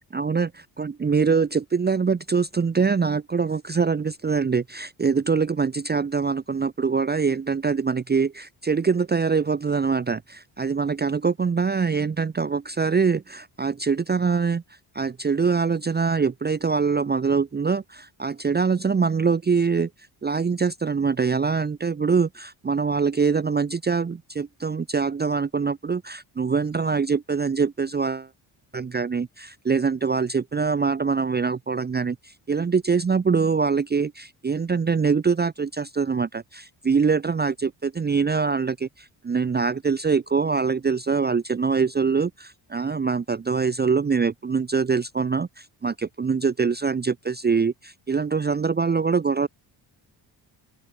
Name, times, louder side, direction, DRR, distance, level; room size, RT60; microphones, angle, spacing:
voice 1, 0.1-0.5 0.8-14.6 14.9-19.9 20.2-28.3 28.7-49.5, right 5 dB, 20° right, 0.7 m, -24 dB
open air
supercardioid pair, 65°, 46 cm